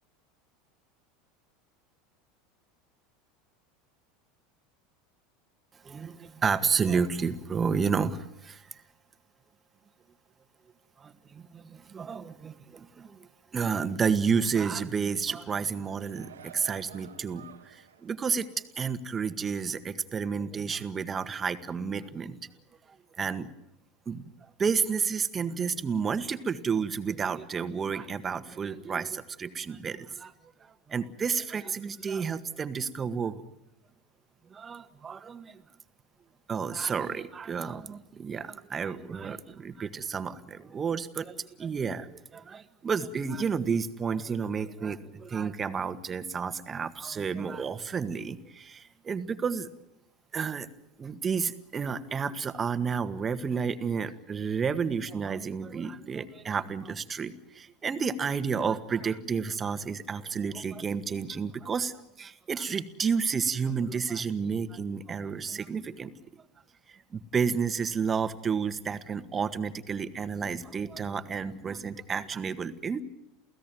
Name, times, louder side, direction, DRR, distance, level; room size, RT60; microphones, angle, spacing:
voice 1, 5.8-8.8 11.0-18.5 18.8-22.4 23.2-23.5 24.0-24.2 24.6-30.3 30.6-33.4 34.5-35.6 36.5-49.7 50.3-50.7 51.0-66.1 66.9-73.0, right 6 dB, 25° right, 11 dB, 1.7 m, -31 dB
sound 1, 15.4-18.1 18.5-18.7, right 9 dB, 85° right, 1.9 m, -51 dB
29.0 x 16.5 x 9.3 m, 0.86 s
hypercardioid pair, 80°, 0 cm